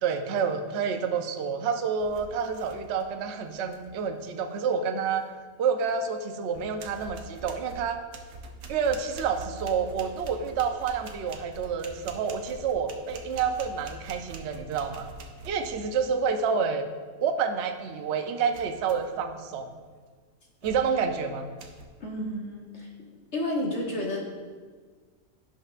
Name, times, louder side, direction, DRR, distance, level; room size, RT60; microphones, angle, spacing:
voice 1, 0.0-5.3 5.6-8.0 8.7-15.1 15.4-16.8 17.2-19.7 20.6-21.5, right 6 dB, 60° right, 6 dB, 0.8 m, -28 dB
sound 1, 2.0-3.2 3.5-4.0 5.9-6.0 6.5-16.1 18.5-19.2 19.7-20.0 20.6-21.1 21.6-21.8, right 2 dB, 75° right, 1.2 m, -45 dB
voice 2, 22.0-22.9 23.3-24.2, left 1 dB, 50° left, -2 dB, 1.7 m, -31 dB
16.5 x 5.6 x 2.4 m, 1.5 s
omnidirectional pair, 1.5 m